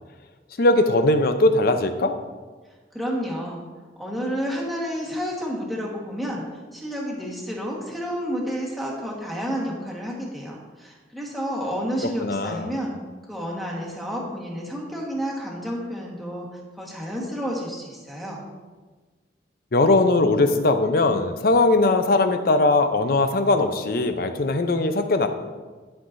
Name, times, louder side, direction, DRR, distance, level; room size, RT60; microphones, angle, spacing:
voice 1, 0.6-2.1 12.2-12.7 19.7-25.3, left 2 dB, 55° left, 8 dB, 0.6 m, -20 dB
voice 2, 2.9-3.7 4.0-13.0 13.3-16.5 16.8-18.4, equal, ahead, -3 dB, 1.3 m, -30 dB
11.5 x 5.6 x 2.6 m, 1.3 s
head